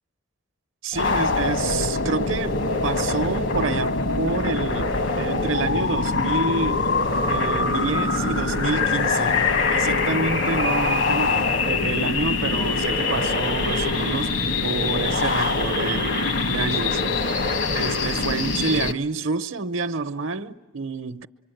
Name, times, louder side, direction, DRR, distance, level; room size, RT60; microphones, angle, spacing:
voice 1, 0.8-6.9 7.3-14.3 14.6-16.1 16.5-17.4 17.7-21.3, right 4 dB, 70° right, 0.8 m, -28 dB
sound 1, 0.9-18.9, left 3 dB, 70° left, 1.2 m, -23 dB
25.0 x 24.5 x 9.2 m
head